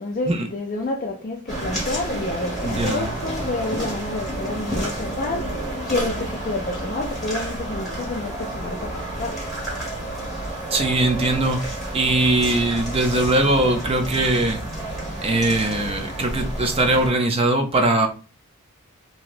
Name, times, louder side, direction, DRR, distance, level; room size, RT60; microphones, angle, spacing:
voice 1, 0.0-9.4, left 2 dB, 40° left, 0.4 m, -29 dB
sound 1, 1.5-17.1, right 1 dB, ahead, 1.4 m, -30 dB
voice 2, 2.6-3.1 10.7-14.6 15.2-18.1, right 2 dB, 25° right, 0.5 m, -21 dB
3.1 x 2.7 x 2.5 m
head